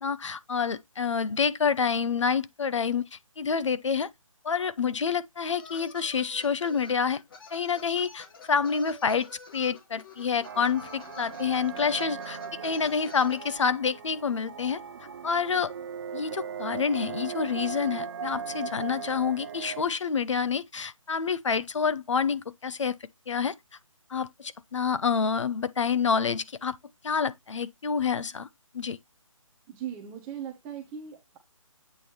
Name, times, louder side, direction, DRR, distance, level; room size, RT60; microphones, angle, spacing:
voice 1, 0.0-3.1 3.4-4.1 4.4-7.2 7.5-9.3 9.5-14.8 15.2-15.7 16.1-23.0 23.3-23.5 24.1-26.8 27.0-28.5 28.7-29.0, left 6 dB, 60° left, 0.8 m, -28 dB
sound 1, 5.6-13.6, left 5 dB, 40° left, 1.9 m, -48 dB
sound 2, 10.4-19.8, right 7 dB, 40° right, 0.9 m, -38 dB
voice 2, 29.7-31.4, right 9 dB, 5° right, 0.4 m, -39 dB
8.5 x 3.4 x 4.2 m
figure-of-eight pair, 160°, 18 cm